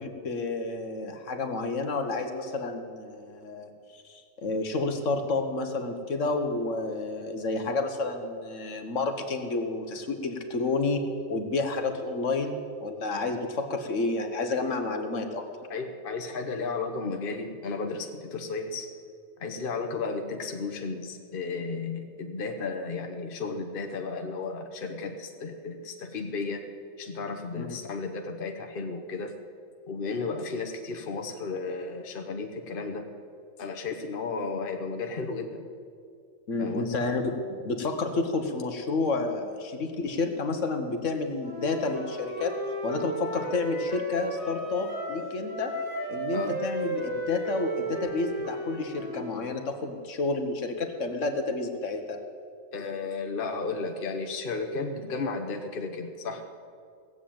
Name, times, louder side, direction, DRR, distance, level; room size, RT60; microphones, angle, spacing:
voice 1, 0.0-15.4 27.5-27.8 36.5-42.5 42.8-45.7 46.1-52.2, left 3 dB, 65° left, 6 dB, 1.5 m, -30 dB
voice 2, 15.7-18.9 19.4-26.7 27.0-29.3 29.9-33.1 33.6-35.7 36.6-37.0 46.3-46.6 52.7-56.4, left 4 dB, 45° left, 5 dB, 1.2 m, -34 dB
Wind instrument woodwind instrument, 41.4-45.2 45.5-49.5, right 1 dB, 80° right, 3.3 m, -34 dB
17.0 x 7.7 x 8.6 m, 2.3 s
omnidirectional pair, 1.4 m